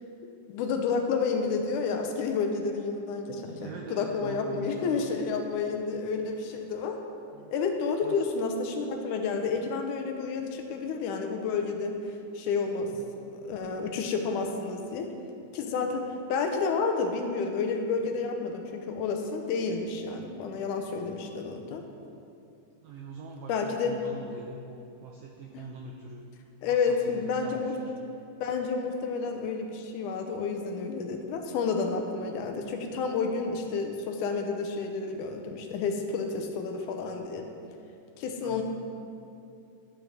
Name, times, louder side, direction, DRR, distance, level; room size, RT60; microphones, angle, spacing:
voice 1, 0.5-7.0 7.5-12.0 12.4-12.9 13.4-15.1 15.5-16.0 16.3-21.8 23.5-23.9 26.6-27.8 28.4-37.5 38.2-38.6, left 5 dB, 85° left, 4 dB, 2.3 m, -30 dB
voice 2, 3.3-5.0 7.3-7.5 8.0-8.3 12.8-13.1 22.8-26.2 26.7-27.9 38.4-38.6, right 4 dB, 85° right, 0 dB, 1.4 m, -43 dB
12.0 x 9.0 x 3.6 m, 2.6 s
omnidirectional pair, 3.6 m